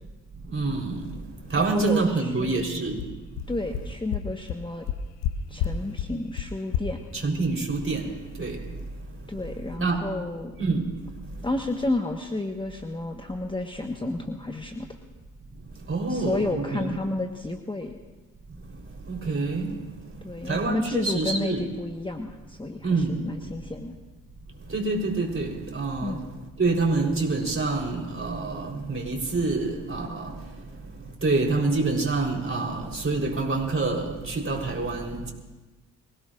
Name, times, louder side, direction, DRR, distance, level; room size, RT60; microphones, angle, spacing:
voice 1, 0.5-1.2 1.5-3.0 7.1-8.1 8.4-8.6 9.8-10.0 10.6-10.9 15.9-17.0 19.1-19.7 20.4-21.7 22.8-23.2 24.7-26.2 26.6-30.3 31.2-35.3, right 3 dB, 30° right, 1 dB, 4.2 m, -26 dB
voice 2, 1.6-2.9 3.5-4.9 5.5-7.0 9.3-10.5 11.4-14.9 16.1-18.0 20.2-23.9 26.0-26.2, left 2 dB, 10° left, 3 dB, 1.4 m, -31 dB
sound 1, 3.0-3.1 3.4-3.5 3.7-3.8 4.1-4.2 4.5-4.6 4.9-5.3 5.6-5.7 6.0-6.1 6.4-6.5 6.7-6.8, left 12 dB, 75° left, 0.9 m, -27 dB
24.0 x 17.0 x 2.6 m, 1.2 s
hypercardioid pair, 45°, 40 cm